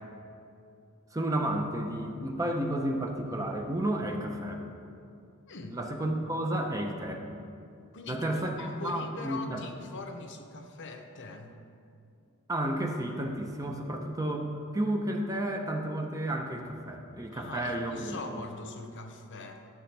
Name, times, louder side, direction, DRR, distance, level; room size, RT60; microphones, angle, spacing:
voice 1, 1.1-4.6 5.7-7.2 8.1-9.6 12.5-18.4, right 1 dB, 15° right, 3 dB, 0.7 m, -32 dB
voice 2, 5.5-5.8 7.9-8.3 8.6-11.6 17.3-19.7, left 3 dB, 60° left, 5 dB, 0.7 m, -42 dB
13.0 x 7.8 x 3.4 m, 2.5 s
head